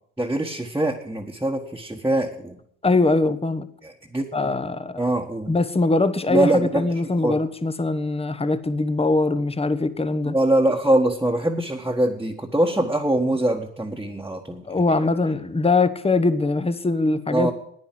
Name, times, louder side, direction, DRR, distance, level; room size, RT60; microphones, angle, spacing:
voice 1, 0.2-2.6 3.8-4.3 5.0-5.5 6.3-6.9 7.2-7.4 10.2-15.0 17.3-17.5, right 1 dB, 5° right, 1.5 m, -23 dB
voice 2, 2.8-3.7 4.3-5.0 5.5-10.4 14.6-17.5, left 3 dB, 15° left, 1.1 m, -22 dB
10.5 x 9.6 x 7.7 m
hypercardioid pair, 60°, 39 cm